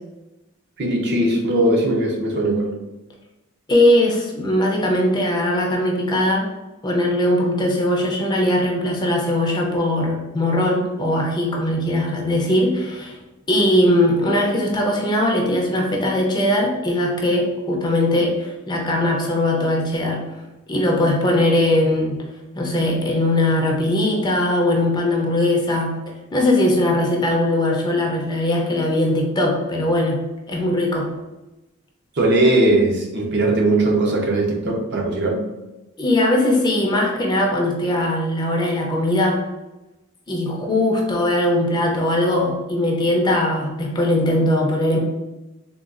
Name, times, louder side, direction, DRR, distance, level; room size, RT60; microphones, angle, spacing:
voice 1, 0.8-2.7 32.2-35.4, right 1 dB, 55° right, 0 dB, 0.6 m, -19 dB
voice 2, 3.7-6.5 6.8-13.2 13.5-20.2 20.7-22.3 22.5-26.0 26.3-31.1 36.0-39.4 40.3-45.0, left 1 dB, 20° left, 0 dB, 0.5 m, -20 dB
3.8 x 2.3 x 2.4 m, 1.0 s
head